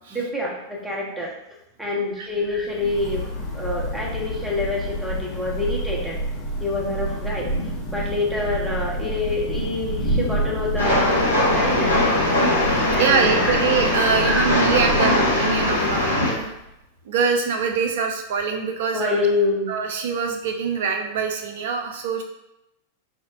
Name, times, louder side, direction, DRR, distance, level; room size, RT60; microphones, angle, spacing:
voice 1, 0.1-1.3 1.8-3.3 3.5-6.2 6.6-7.5 7.9-11.2 11.5-11.9 12.9-13.6 14.1-14.7 18.9-19.7, left 2 dB, 5° right, -4 dB, 0.8 m, -26 dB
Thunder / Rain, 2.4-16.7, equal, 35° left, 0.7 m, -29 dB
Train, 10.8-16.3, left 1 dB, 80° left, 0.7 m, -20 dB
voice 2, 13.0-16.5 17.1-19.2 19.7-22.2, right 6 dB, 55° right, 4 dB, 0.4 m, -24 dB
4.1 x 2.0 x 2.5 m, 0.87 s
figure-of-eight pair, 90°, 0 cm